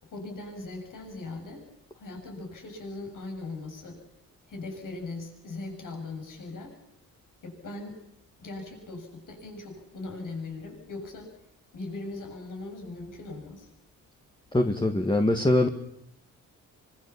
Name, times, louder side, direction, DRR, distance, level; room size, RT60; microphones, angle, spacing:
voice 1, 0.0-1.7 1.9-4.0 4.5-6.8 7.4-8.0 8.4-11.3 11.7-13.7, left 2 dB, 65° left, 2 dB, 7.4 m, -39 dB
voice 2, 14.5-15.7, left 1 dB, 15° left, 5 dB, 1.8 m, -23 dB
25.0 x 23.5 x 7.1 m, 0.81 s
cardioid pair, 85°, 34 cm